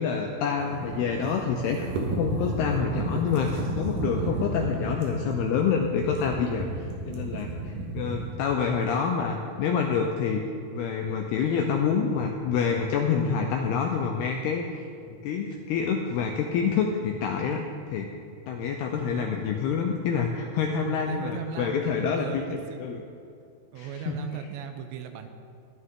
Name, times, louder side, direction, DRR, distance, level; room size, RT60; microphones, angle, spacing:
voice 1, 0.0-1.9 2.2-6.7 7.1-10.4 10.7-14.9 15.2-17.6 17.9-18.1 18.5-22.4 22.8-23.0 23.8-24.2, left 6 dB, 85° left, 3 dB, 2.3 m, -27 dB
sound 1, 0.5-8.3, right 2 dB, 65° right, 2.5 m, -33 dB
voice 2, 20.7-21.8 22.2-22.8 23.7-25.3, right 9 dB, 80° right, 7 dB, 2.6 m, -38 dB
21.0 x 9.7 x 3.7 m, 2.4 s
omnidirectional pair, 5.5 m